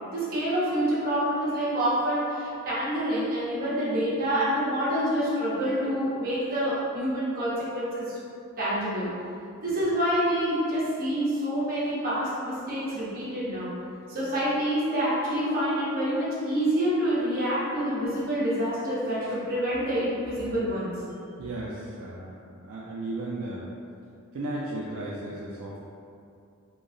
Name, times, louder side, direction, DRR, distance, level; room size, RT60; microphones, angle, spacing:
voice 1, 0.1-8.2 8.6-9.1 9.6-13.7 14.1-20.9, equal, 45° right, -9 dB, 1.0 m, -27 dB
voice 2, 21.4-22.4 22.7-23.7 24.3-25.8, right 2 dB, 75° right, -5 dB, 0.4 m, -34 dB
3.0 x 2.3 x 3.8 m, 2.5 s
head